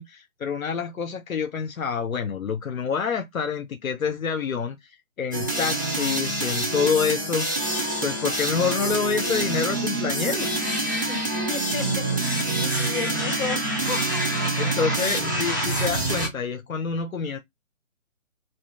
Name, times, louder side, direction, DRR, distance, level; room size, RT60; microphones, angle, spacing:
voice 1, 0.0-4.8 5.2-7.6 8.0-10.6 14.6-17.4, left 6 dB, 80° left, 0.7 m, -27 dB
sound 1, 5.3-16.3, right 2 dB, 15° right, 0.4 m, -26 dB
voice 2, 11.1-14.7, left 4 dB, 40° left, 1.8 m, -35 dB
2.8 x 2.6 x 3.3 m
figure-of-eight pair, 140°, 41 cm